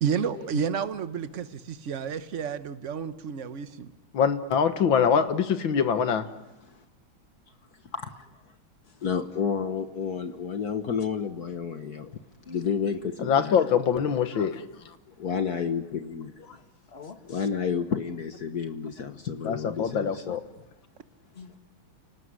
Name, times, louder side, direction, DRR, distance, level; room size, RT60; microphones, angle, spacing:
voice 1, 0.0-3.9, right 7 dB, 45° right, 11 dB, 1.2 m, -30 dB
voice 2, 4.1-6.3 13.2-14.6 19.4-20.4, left 7 dB, 70° left, 10 dB, 2.2 m, -24 dB
voice 3, 9.0-12.1 12.5-13.7 15.1-16.3 17.3-20.2, left 6 dB, 55° left, 8 dB, 1.5 m, -30 dB
voice 4, 14.1-14.5 16.4-17.5 20.3-20.4 21.3-21.6, left 5 dB, 30° left, 8 dB, 1.9 m, -46 dB
30.0 x 19.0 x 9.8 m, 0.93 s
omnidirectional pair, 2.3 m